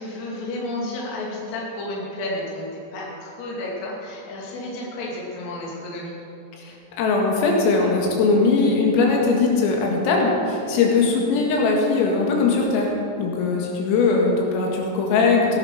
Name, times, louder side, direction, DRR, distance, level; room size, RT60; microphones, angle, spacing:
voice 1, 0.0-6.1, left 1 dB, 40° left, -4 dB, 3.1 m, -31 dB
voice 2, 6.5-12.9 13.2-15.6, left 4 dB, 80° left, -1 dB, 4.5 m, -20 dB
17.0 x 10.5 x 5.8 m, 2.7 s
omnidirectional pair, 5.9 m